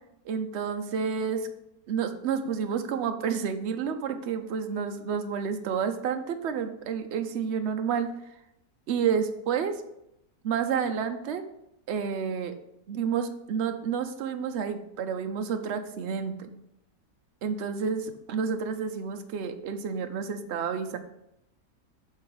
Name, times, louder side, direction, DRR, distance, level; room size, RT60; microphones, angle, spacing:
voice 1, 0.3-1.5 1.9-8.1 8.9-9.8 10.4-11.4 11.9-12.6 12.9-16.5 17.4-18.0 18.3-21.0, right 6 dB, 60° right, 7 dB, 0.7 m, -30 dB
8.5 x 3.8 x 4.8 m, 0.81 s
omnidirectional pair, 1.8 m